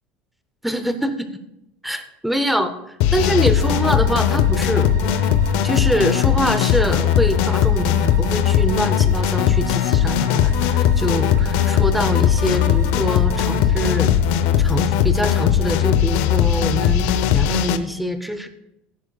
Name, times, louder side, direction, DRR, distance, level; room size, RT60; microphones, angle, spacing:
voice 1, 0.6-1.3 1.8-2.7 3.1-5.4 5.6-14.1 14.6-18.5, equal, ahead, 9 dB, 0.6 m, -24 dB
sound 1, 3.0-17.8, left 9 dB, 65° left, 0.7 m, -18 dB
sound 2, 3.5-14.0, right 4 dB, 75° right, 1.2 m, -40 dB
17.0 x 10.0 x 2.3 m, 0.86 s
cardioid pair, 160°, 4 cm